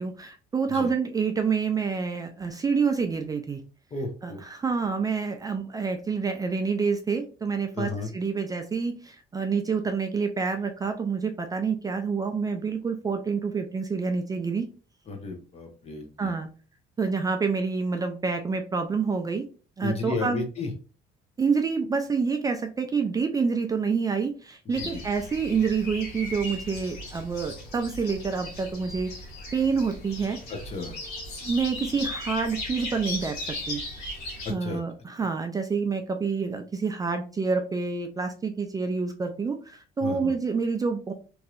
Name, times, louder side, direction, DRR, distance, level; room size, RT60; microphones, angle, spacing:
voice 1, 0.0-3.6 4.2-14.7 16.2-16.5 17.0-19.4 19.8-20.4 21.4-29.1 29.5-30.4 31.4-33.8 34.5-41.1, right 5 dB, 20° right, 5 dB, 0.4 m, -27 dB
voice 2, 3.9-4.4 5.5-5.6 7.7-8.1 15.1-16.3 19.8-20.7 24.7-25.0 30.5-31.0 34.4-34.8 35.2-35.3 40.0-40.3, left 3 dB, 40° left, 4 dB, 0.9 m, -33 dB
sound 1, 24.7-34.5, left 1 dB, 90° left, 1.3 m, -37 dB
3.1 x 2.7 x 2.4 m, 0.36 s
cardioid pair, 110°, 17 cm